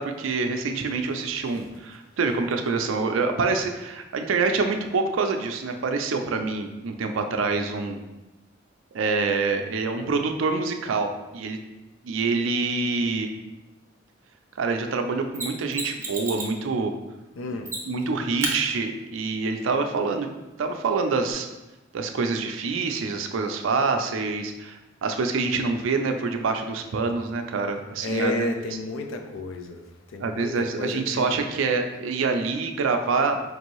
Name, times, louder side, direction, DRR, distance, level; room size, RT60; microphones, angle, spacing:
voice 1, 0.0-8.0 8.9-11.6 12.0-13.3 14.6-16.9 17.9-20.3 20.6-21.5 21.9-28.5 30.2-33.4, right 4 dB, 75° right, 5 dB, 0.4 m, -26 dB
Mechanisms, 15.3-16.6 17.6-18.1 18.4-18.6 21.3-21.4, right 2 dB, 15° right, 0.6 m, -31 dB
voice 2, 17.4-17.7 28.0-29.8 30.1-31.3, left 2 dB, 85° left, 5 dB, 0.5 m, -31 dB
4.6 x 2.6 x 3.0 m, 1.0 s
head